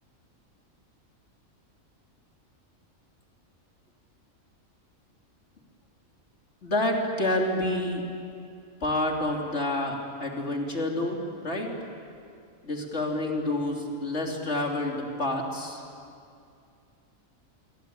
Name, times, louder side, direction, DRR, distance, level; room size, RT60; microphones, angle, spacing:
voice 1, 6.6-8.0 8.8-11.7 12.6-15.8, left 1 dB, 55° left, 1 dB, 3.4 m, -28 dB
27.5 x 23.0 x 8.9 m, 2.4 s
omnidirectional pair, 1.4 m